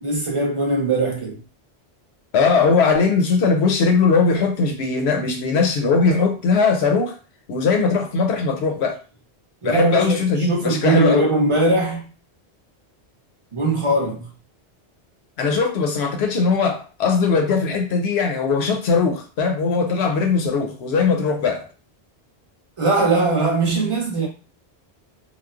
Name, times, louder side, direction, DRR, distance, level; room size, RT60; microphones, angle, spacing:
voice 1, 0.0-1.4 9.6-12.1 13.5-14.3 22.8-24.3, right 2 dB, 35° right, 0.7 m, -20 dB
voice 2, 2.3-7.1 7.5-9.0 9.6-11.3 15.4-21.6, left 4 dB, 80° left, 0.9 m, -19 dB
3.0 x 2.0 x 2.3 m
omnidirectional pair, 1.1 m